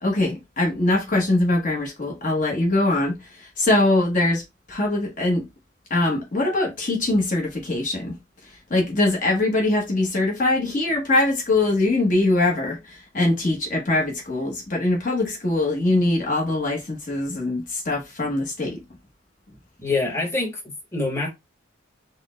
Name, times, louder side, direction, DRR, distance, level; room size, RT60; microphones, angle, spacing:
voice 1, 0.0-4.4 4.7-5.5 5.9-8.2 8.4-18.8, left 2 dB, 40° left, 0.9 m, -22 dB
voice 2, 19.8-21.3, left 3 dB, 15° left, 1.1 m, -25 dB
4.1 x 2.0 x 3.7 m
head